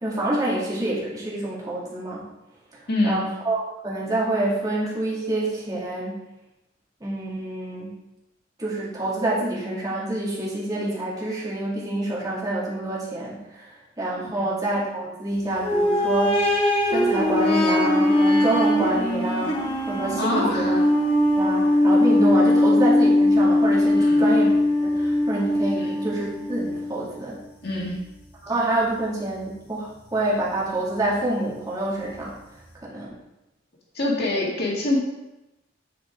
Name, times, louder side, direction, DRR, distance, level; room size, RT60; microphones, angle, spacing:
voice 1, 0.0-2.2 2.7-6.2 7.0-8.0 8.6-16.4 16.8-20.8 21.3-24.5 24.8-27.4 28.4-32.3 32.8-33.1, right 1 dB, 20° right, -6 dB, 2.0 m, -27 dB
voice 2, 2.9-3.2 14.4-14.5 20.2-20.8 22.5-22.6 24.0-24.2 25.8-26.0 27.6-28.0 33.9-35.0, left 2 dB, 55° left, -3 dB, 2.1 m, -25 dB
sound 1, 15.6-27.2 27.7-27.8 28.8-28.9, left 1 dB, 30° left, 1.6 m, -20 dB
9.4 x 5.0 x 3.6 m, 0.94 s
head